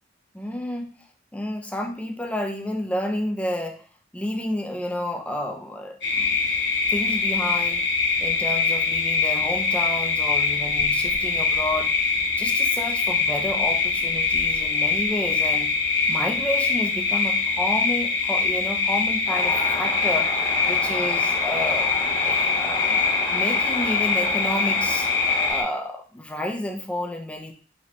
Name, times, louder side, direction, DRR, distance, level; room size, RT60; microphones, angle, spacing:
voice 1, 0.3-1.0 1.3-3.9 4.1-6.3 6.9-7.9 8.2-12.0 12.4-15.7 16.1-20.3 20.6-25.1 25.5-27.5, left 1 dB, 5° left, 4 dB, 0.4 m, -30 dB
sound 1, 6.0-25.6, left 4 dB, 65° left, 1.2 m, -23 dB
sound 2, 19.3-25.5, left 1 dB, 30° left, 1.0 m, -32 dB
4.1 x 3.0 x 3.0 m, 0.39 s
head